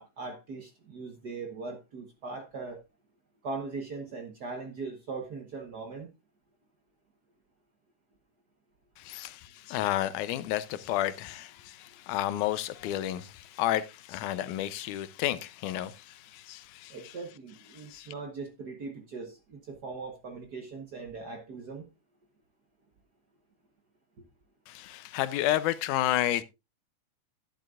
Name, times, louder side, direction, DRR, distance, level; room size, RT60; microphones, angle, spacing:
voice 1, 0.0-2.8 3.4-6.1 16.9-21.9, right 4 dB, 60° right, 1.0 m, -40 dB
voice 2, 9.0-17.1 17.9-18.1 24.7-26.4, left 13 dB, 90° left, 2.2 m, -31 dB
11.5 x 10.5 x 2.4 m
omnidirectional pair, 3.4 m